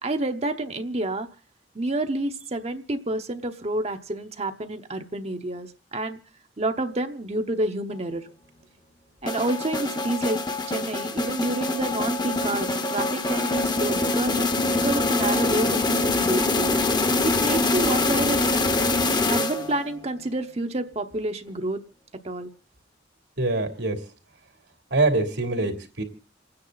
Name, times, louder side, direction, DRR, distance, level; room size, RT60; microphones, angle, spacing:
voice 1, 0.0-1.3 1.7-6.2 6.6-8.3 9.2-10.4 10.7-16.7 17.2-18.4 19.3-21.8 22.2-22.5, right 2 dB, 35° right, 6 dB, 0.9 m, -29 dB
sound 1, 9.3-19.9, left 2 dB, 25° left, 0.9 m, -24 dB
voice 2, 23.4-24.0 24.9-26.0, right 2 dB, 90° right, 5 dB, 3.1 m, -24 dB
29.0 x 9.7 x 4.0 m, 0.36 s
head